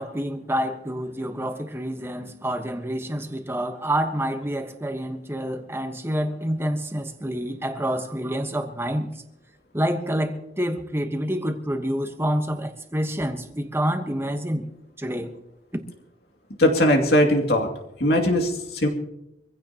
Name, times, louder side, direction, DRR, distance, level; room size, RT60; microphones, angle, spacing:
voice 1, 0.0-9.1 9.7-14.7 15.0-15.3 15.7-15.8, equal, 15° right, 1.3 m, -27 dB
voice 2, 16.6-17.7 18.0-18.9, left 1 dB, 65° left, 2.6 m, -19 dB
25.0 x 16.0 x 3.0 m
head